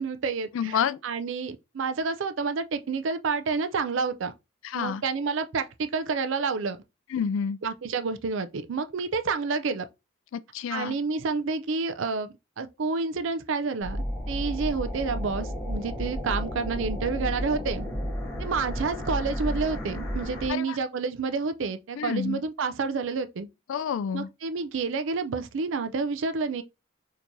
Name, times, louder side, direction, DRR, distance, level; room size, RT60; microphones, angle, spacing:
voice 1, 0.0-4.3 4.7-6.8 7.6-9.9 10.7-17.9 18.4-23.5 24.1-26.6, right 4 dB, 60° right, 0.4 m, -29 dB
voice 2, 0.5-1.0 4.6-5.0 7.1-7.6 10.3-11.0 20.5-20.8 22.0-22.4 23.7-24.3, left 7 dB, 65° left, 0.3 m, -29 dB
sound 1, 13.8-20.5, equal, 15° left, 1.7 m, -32 dB
4.4 x 2.9 x 2.6 m
head